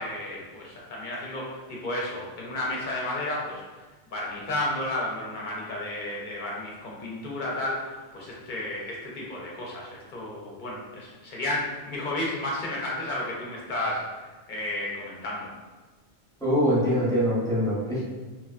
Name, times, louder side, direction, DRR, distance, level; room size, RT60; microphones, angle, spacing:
voice 1, 0.0-3.6 4.1-15.5, left 1 dB, 55° left, -4 dB, 0.6 m, -32 dB
voice 2, 16.4-18.0, equal, 5° left, -9 dB, 0.6 m, -23 dB
2.8 x 2.1 x 2.4 m, 1.3 s
omnidirectional pair, 1.1 m